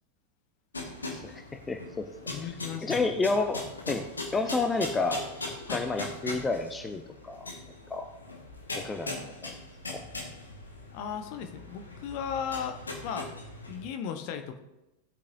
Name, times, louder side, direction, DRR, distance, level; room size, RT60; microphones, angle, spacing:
sound 1, 0.7-13.8, left 2 dB, 75° left, 1.7 m, -40 dB
voice 1, 1.1-2.1 2.4-2.5 2.8-4.0 4.3-7.5 7.9-8.1 8.7-9.1 9.4-9.5 9.9-10.0, left 3 dB, 15° left, 7 dB, 0.7 m, -30 dB
voice 2, 2.3-3.1 5.7-5.8 10.9-12.8 13.0-13.3 13.7-14.6, left 7 dB, 45° left, 7 dB, 1.2 m, -36 dB
18.0 x 8.3 x 2.8 m, 0.97 s
figure-of-eight pair, 90°, 0 cm